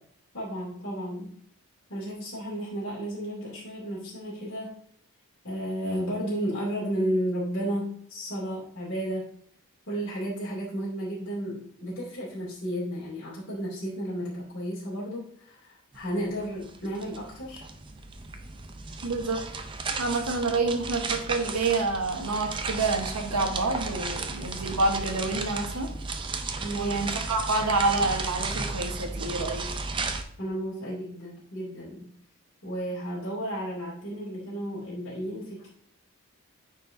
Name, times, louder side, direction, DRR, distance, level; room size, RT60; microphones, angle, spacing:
voice 1, 0.3-1.3 1.9-4.8 5.4-9.2 9.9-17.6 26.6-27.0 30.4-32.1 32.6-35.7, equal, 55° left, -8 dB, 2.5 m, -33 dB
sound 1, 15.9-16.1 16.3-30.2, right 3 dB, 20° right, 0.4 m, -34 dB
voice 2, 19.0-19.4 20.0-25.9 26.7-29.6, right 3 dB, 90° right, 4 dB, 1.2 m, -28 dB
9.2 x 4.4 x 2.6 m, 0.65 s
head